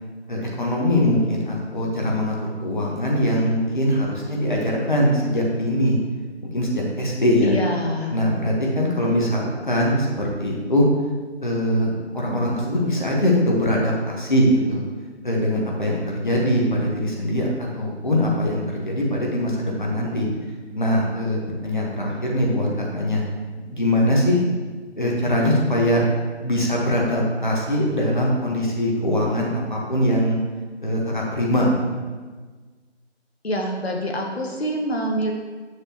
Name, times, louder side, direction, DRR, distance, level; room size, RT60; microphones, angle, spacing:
voice 1, 0.3-6.0 6.5-7.5 8.1-10.9 11.4-11.9 12.1-14.8 15.2-20.3 20.7-23.2 23.7-24.4 25.0-26.0 26.4-30.4 30.8-32.0, equal, 45° left, -2 dB, 1.4 m, -22 dB
voice 2, 7.4-8.1 33.4-35.3, equal, 60° left, 0 dB, 1.3 m, -25 dB
6.8 x 6.5 x 2.9 m, 1.4 s
figure-of-eight pair, 175°, 35 cm